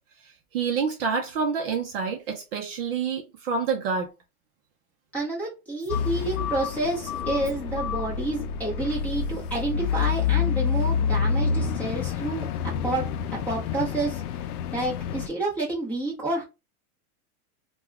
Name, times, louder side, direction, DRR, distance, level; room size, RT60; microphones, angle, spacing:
voice 1, 0.2-4.1, right 5 dB, 40° right, 0.6 m, -28 dB
voice 2, 5.1-13.1 13.5-14.2 14.7-16.4, right 2 dB, 5° left, 0.8 m, -29 dB
bulldozer caterpillar, 5.9-15.3, left 7 dB, 80° left, 0.6 m, -28 dB
2.8 x 2.3 x 3.5 m
supercardioid pair, 165°, 44 cm